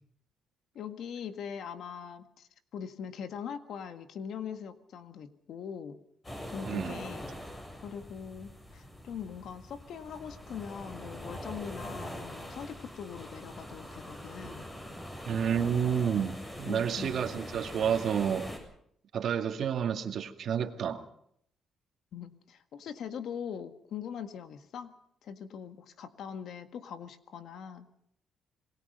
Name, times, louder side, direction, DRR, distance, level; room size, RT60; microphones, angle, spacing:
voice 1, 0.8-6.0 6.5-7.3 7.8-14.7 16.7-17.2 22.1-24.9 25.2-27.9, left 7 dB, 70° left, 1.7 m, -42 dB
sound 1, 6.2-18.6, equal, 20° left, 7.4 m, -43 dB
voice 2, 6.7-7.0 15.3-18.5 19.1-21.0, right 8 dB, 65° right, 2.0 m, -30 dB
27.5 x 20.5 x 5.5 m
cardioid pair, 90°, 0 cm